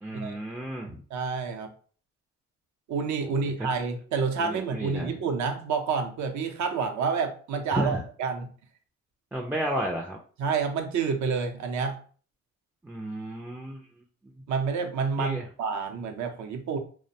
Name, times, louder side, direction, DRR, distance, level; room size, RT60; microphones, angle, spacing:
voice 1, 0.0-1.0 3.6-3.7 4.4-5.2 7.7-8.0 9.3-10.2 12.8-13.8 15.2-15.4, right 1 dB, 5° right, -1 dB, 0.3 m, -32 dB
voice 2, 1.1-1.7 2.9-8.5 10.4-12.0 14.5-16.8, right 5 dB, 70° right, 5 dB, 0.5 m, -29 dB
2.5 x 2.0 x 2.7 m, 0.43 s
cardioid pair, 90°, 30 cm